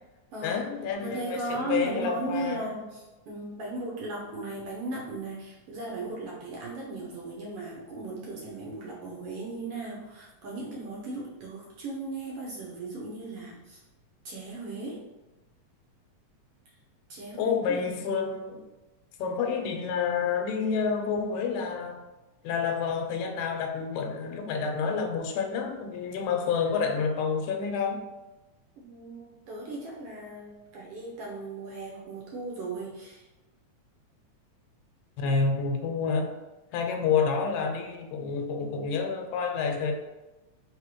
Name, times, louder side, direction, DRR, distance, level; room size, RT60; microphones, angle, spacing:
voice 1, 0.4-2.6 17.3-18.6 19.2-22.0 22.4-28.0 35.2-36.3 36.7-39.9, left 5 dB, 90° left, 3 dB, 2.0 m, -29 dB
voice 2, 1.0-13.8 14.2-15.0 17.1-17.9 28.8-33.3, right 2 dB, 75° right, -3 dB, 1.3 m, -37 dB
4.0 x 3.6 x 3.0 m, 1.1 s
omnidirectional pair, 3.3 m